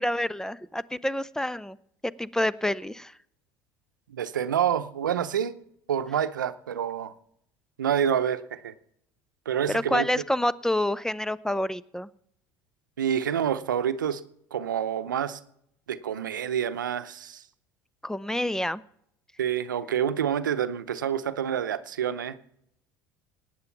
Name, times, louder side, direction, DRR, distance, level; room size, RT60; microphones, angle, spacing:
voice 1, 0.0-1.8 2.2-3.1 9.7-12.1 18.0-18.8, left 1 dB, 5° left, 20 dB, 0.5 m, -28 dB
voice 2, 4.1-5.6 5.9-7.1 7.8-8.7 9.5-10.1 13.0-14.2 14.5-15.4 15.9-17.4 19.4-22.4, right 9 dB, 90° right, 13 dB, 0.7 m, -27 dB
18.0 x 9.1 x 5.9 m, 0.74 s
hypercardioid pair, 75°, 10 cm